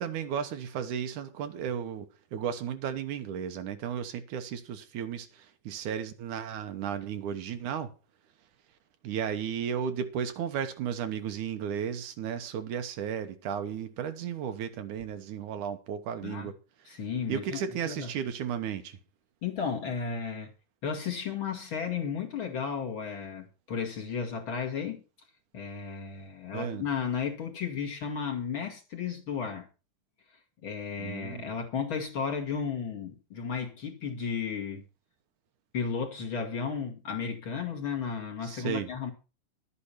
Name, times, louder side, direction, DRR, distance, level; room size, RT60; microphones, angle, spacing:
voice 1, 0.0-7.9 9.0-16.6 17.3-19.0 26.5-26.9 31.0-31.5 38.4-38.9, right 8 dB, 75° right, 2.6 m, -34 dB
voice 2, 16.9-18.1 19.4-20.5 20.8-25.0 25.5-29.7 30.6-34.8 35.7-39.1, left 6 dB, 45° left, 2.6 m, -34 dB
12.5 x 8.5 x 5.8 m
omnidirectional pair, 3.6 m